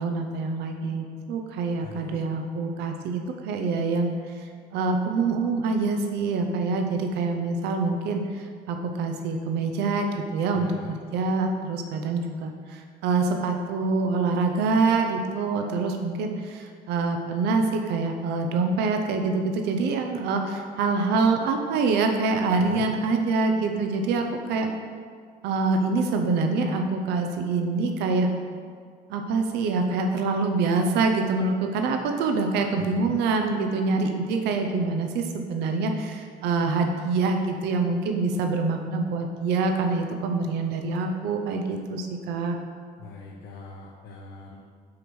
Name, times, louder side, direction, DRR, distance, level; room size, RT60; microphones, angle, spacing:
voice 1, 0.0-24.7 25.4-28.3 29.1-42.6, right 3 dB, 85° right, 4 dB, 0.6 m, -25 dB
voice 2, 1.8-2.2 10.5-10.9 22.6-22.9 32.8-33.1 43.0-44.6, left 4 dB, 80° left, -2 dB, 0.9 m, -43 dB
8.4 x 3.1 x 6.1 m, 2.1 s
cardioid pair, 110°, 17 cm